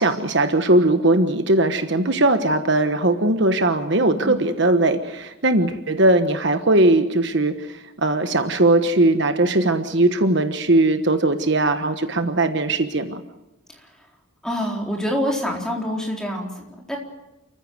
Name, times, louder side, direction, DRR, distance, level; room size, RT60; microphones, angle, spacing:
voice 1, 0.0-13.2, right 2 dB, 55° right, 8 dB, 1.3 m, -19 dB
voice 2, 14.4-17.0, equal, 5° left, -1 dB, 4.1 m, -26 dB
29.5 x 15.0 x 7.9 m, 1.0 s
head